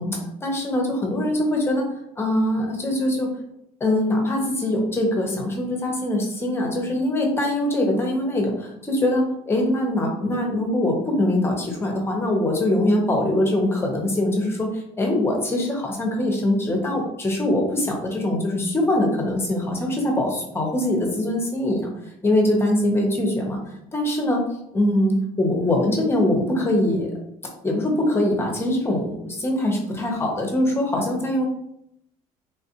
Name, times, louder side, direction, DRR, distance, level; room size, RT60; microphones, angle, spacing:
voice 1, 0.0-1.9 2.2-3.3 3.8-21.9 22.2-23.6 23.9-24.4 24.7-27.1 27.6-31.5, left 1 dB, 15° left, 0 dB, 0.7 m, -23 dB
3.3 x 2.4 x 2.8 m, 0.76 s
cardioid pair, 130°, 14 cm